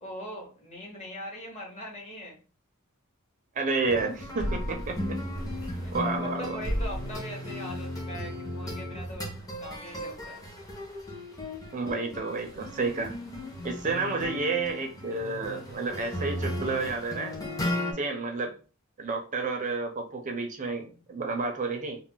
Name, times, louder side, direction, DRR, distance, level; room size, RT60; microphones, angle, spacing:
voice 1, 0.0-2.4 5.8-10.4, equal, 30° left, 0 dB, 0.9 m, -41 dB
voice 2, 3.6-5.2 5.9-6.5 11.7-13.1 13.6-17.4 17.9-18.6 19.0-22.0, right 3 dB, 35° right, 4 dB, 0.4 m, -30 dB
sound 1, 3.8-17.9, left 1 dB, 15° left, 0.5 m, -36 dB
sound 2, 4.2-6.3 6.6-7.3, equal, 60° left, 0.9 m, -34 dB
2.3 x 2.0 x 3.7 m, 0.36 s
head